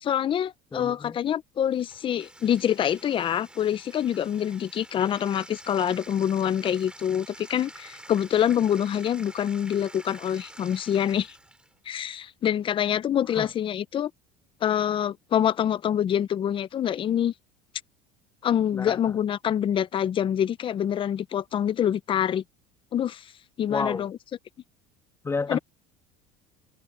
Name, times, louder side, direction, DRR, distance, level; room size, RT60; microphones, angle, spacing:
voice 1, 0.0-11.3 11.9-14.1 14.6-17.3 18.4-22.4 22.9-23.2 23.6-24.1 25.5-25.6, left 9 dB, 35° left, 0.8 m, -26 dB
voice 2, 0.7-1.2 13.3-13.5 18.7-19.0 23.6-24.1 25.2-25.6, left 4 dB, 15° left, 1.8 m, -30 dB
Bathtub (filling or washing), 1.7-11.7, right 1 dB, 5° right, 4.0 m, -48 dB
supercardioid pair, 115°, 15 cm